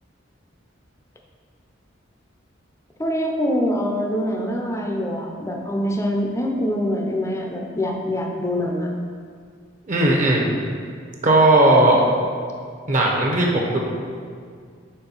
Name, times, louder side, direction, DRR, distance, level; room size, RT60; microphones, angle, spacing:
voice 1, 3.0-8.9, equal, 15° left, 1 dB, 0.5 m, -24 dB
voice 2, 9.9-10.5 11.2-12.0 12.9-13.8, right 2 dB, 40° right, -1 dB, 0.8 m, -16 dB
4.4 x 4.1 x 5.5 m, 2.1 s
head